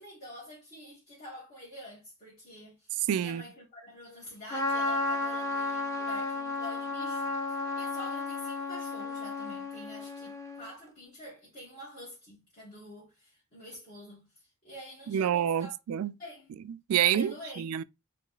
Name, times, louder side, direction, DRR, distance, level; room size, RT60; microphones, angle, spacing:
voice 1, 0.0-15.7 16.2-16.5 17.0-17.7, left 1 dB, 45° left, 1.6 m, -47 dB
voice 2, 3.1-3.4 15.1-16.1 16.9-17.8, right 9 dB, 90° right, 0.3 m, -27 dB
Trumpet, 4.5-10.7, left 3 dB, 15° left, 0.7 m, -33 dB
3.2 x 3.1 x 3.8 m
head